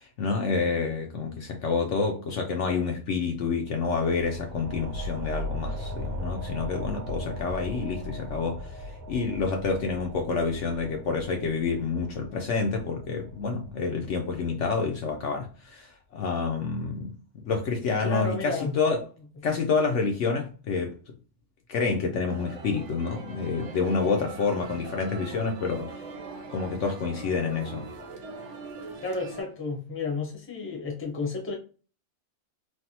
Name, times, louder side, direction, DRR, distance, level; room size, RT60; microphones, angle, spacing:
voice 1, 0.0-19.0 19.4-21.0 21.7-26.0 26.5-27.9, left 4 dB, 65° left, 0.8 m, -28 dB
sound 1, 3.7-14.9, left 1 dB, 90° right, 1.1 m, -38 dB
voice 2, 18.0-18.7 29.0-31.6, left 3 dB, 10° left, 0.7 m, -31 dB
sound 2, 22.3-29.4, right 3 dB, 65° right, 0.9 m, -41 dB
3.3 x 2.3 x 2.7 m
omnidirectional pair, 1.5 m